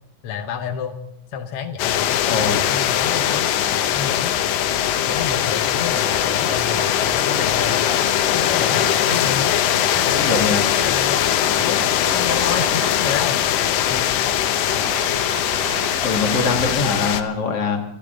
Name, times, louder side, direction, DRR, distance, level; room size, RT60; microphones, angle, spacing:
voice 1, 0.2-1.0 1.3-3.5 3.9-4.3 5.0-7.7 8.3-13.4 13.9-14.1, left 7 dB, 70° left, 5 dB, 1.4 m, -30 dB
sound 1, 1.8-17.2, left 10 dB, 85° left, 2.5 m, -20 dB
voice 2, 2.3-2.6 10.1-10.6 16.0-17.8, left 4 dB, 50° left, 3 dB, 2.6 m, -22 dB
sound 2, 6.0-7.9 8.2-9.3 9.9-10.4 10.8-10.9 11.1-13.0 13.3-14.2 14.5-16.9, right 5 dB, 70° right, 3.6 m, -35 dB
26.0 x 12.0 x 3.8 m, 0.79 s
omnidirectional pair, 3.8 m